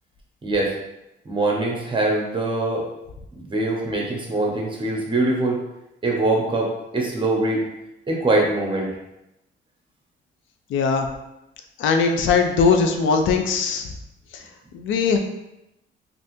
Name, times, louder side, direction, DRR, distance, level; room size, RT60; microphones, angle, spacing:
voice 1, 1.2-2.9 3.3-5.6 6.0-7.6 8.1-8.9, right 2 dB, 25° right, -1 dB, 0.9 m, -23 dB
voice 2, 10.7-11.1 11.8-13.9 14.3-14.4 14.7-15.2, left 5 dB, 75° left, 5 dB, 0.4 m, -20 dB
3.4 x 2.5 x 2.7 m, 0.90 s
cardioid pair, 90°, 20 cm